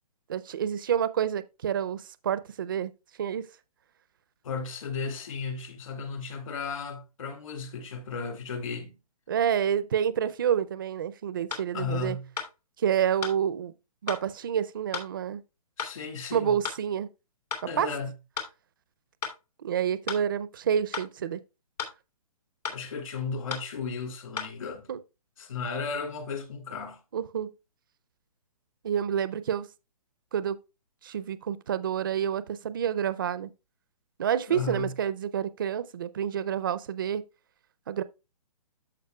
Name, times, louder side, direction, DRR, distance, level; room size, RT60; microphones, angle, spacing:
voice 1, 0.3-2.9 3.2-3.5 9.3-12.2 12.8-13.7 14.0-15.4 16.3-17.1 17.8-17.9 19.6-21.4 24.9-25.0 27.1-27.5 28.8-29.7 30.3-30.6 31.0-33.5 34.2-37.2 37.9-38.0, right 9 dB, 35° right, 0.4 m, -28 dB
voice 2, 4.4-9.0 11.7-12.3 15.8-16.6 17.6-18.1 22.7-24.9 25.4-27.0 34.5-35.0, left 5 dB, 60° left, 2.4 m, -35 dB
sound 1, 11.5-11.7 12.4-12.5 13.2-13.4 14.1-14.2 14.9-15.1 15.8-15.9 16.6-16.8 17.5-17.7 18.4-18.5 19.2-19.4 20.1-20.2 20.9-21.1 21.8-22.0 22.6-22.8 23.5-23.7 24.4-24.5, left 6 dB, 80° left, 2.6 m, -34 dB
13.5 x 5.0 x 2.2 m
hypercardioid pair, 170°, 20 cm